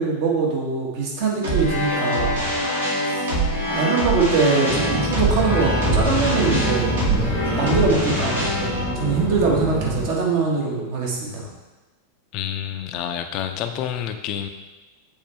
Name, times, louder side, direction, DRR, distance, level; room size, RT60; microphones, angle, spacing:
voice 1, 0.0-2.4 3.1-3.2 3.7-6.9 7.6-8.6 8.9-11.5, right 4 dB, 50° right, -2 dB, 1.5 m, -22 dB
sound 1, 1.4-10.6, right 1 dB, 70° right, 1.6 m, -25 dB
sound 2, 4.7-10.1, equal, ahead, 0.9 m, -26 dB
voice 2, 12.3-14.5, left 9 dB, 40° left, 7 dB, 0.5 m, -28 dB
7.2 x 4.3 x 3.4 m, 1.1 s
figure-of-eight pair, 90°, 0 cm